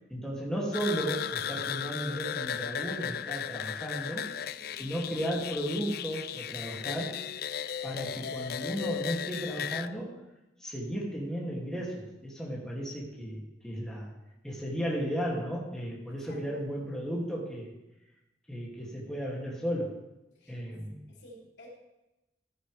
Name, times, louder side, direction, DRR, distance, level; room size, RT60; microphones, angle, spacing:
voice 1, 0.1-4.3 4.8-7.2 7.8-10.2 10.6-14.1 14.4-17.7 18.5-19.9 20.5-21.0, equal, 5° left, -5 dB, 2.6 m, -34 dB
sound 1, 0.7-9.9, left 9 dB, 60° left, 0.4 m, -36 dB
voice 2, 4.5-4.9 16.3-16.7 20.4-20.6 21.1-21.7, left 1 dB, 85° left, -2 dB, 3.4 m, -53 dB
13.5 x 10.5 x 3.5 m, 0.98 s
head